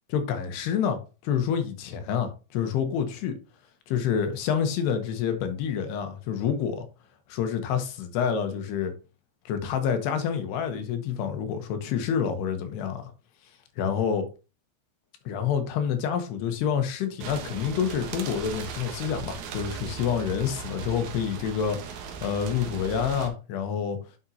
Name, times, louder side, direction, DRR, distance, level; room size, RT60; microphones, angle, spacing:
voice 1, 0.1-3.4 3.9-6.9 7.3-8.9 9.5-13.1 13.8-14.3 15.3-24.0, left 7 dB, 75° left, 3.0 m, -28 dB
sound 1, 17.2-23.3, right 7 dB, 75° right, 1.7 m, -38 dB
9.9 x 6.1 x 2.8 m
omnidirectional pair, 5.0 m